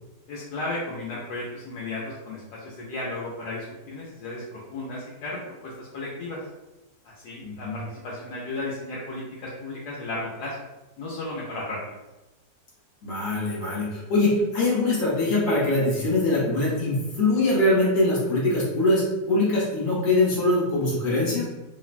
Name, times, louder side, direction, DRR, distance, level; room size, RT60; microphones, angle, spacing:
voice 1, 0.3-6.4 7.0-10.6 11.0-12.0, left 2 dB, 80° left, -5 dB, 1.1 m, -34 dB
voice 2, 7.4-7.8 13.0-21.5, left 2 dB, 60° left, -6 dB, 1.1 m, -23 dB
3.1 x 2.1 x 2.4 m, 1.0 s
omnidirectional pair, 1.8 m